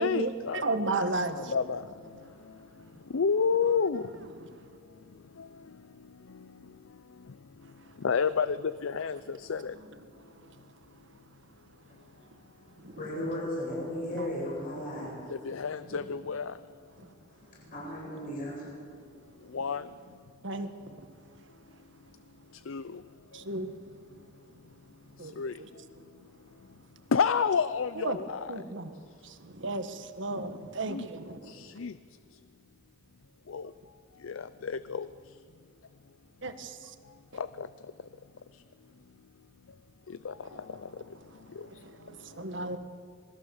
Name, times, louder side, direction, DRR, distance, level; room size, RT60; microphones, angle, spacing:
voice 1, 0.0-1.0 1.3-1.9 3.1-4.1 5.4-5.5 8.0-9.8 15.3-16.5 19.5-19.9 22.7-23.0 25.4-25.5 27.1-28.6 30.8-31.1 31.5-31.9 33.5-33.7 34.2-35.1 37.3-37.7 40.1-40.9 41.6-41.7, left 6 dB, 85° left, 0.5 m, -30 dB
voice 2, 0.6-1.5 12.8-12.9 14.1-14.2 20.4-20.7 23.3-23.7 25.2-25.3 28.0-28.2 28.5-28.9 29.2-31.7 36.4-36.8 41.8-42.8, right 2 dB, 65° right, 1.6 m, -33 dB
voice 3, 13.0-15.1 17.7-18.6, left 1 dB, 45° left, 7.7 m, -35 dB
27.0 x 20.0 x 7.2 m
head